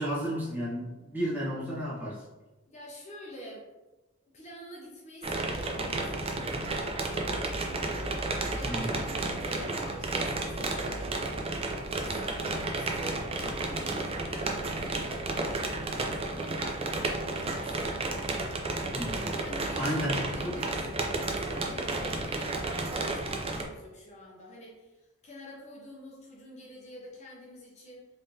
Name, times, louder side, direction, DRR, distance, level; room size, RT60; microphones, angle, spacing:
voice 1, 0.0-2.2 8.6-8.9 18.9-19.4 19.7-20.6, equal, 10° right, -8 dB, 1.1 m, -33 dB
voice 2, 2.7-3.7 4.3-7.8 8.2-11.4 11.8-17.9 19.4-28.1, equal, 35° left, -4 dB, 0.6 m, -47 dB
sound 1, 5.2-23.6, right 2 dB, 30° right, 0.4 m, -32 dB
3.6 x 3.2 x 2.7 m, 1.1 s
head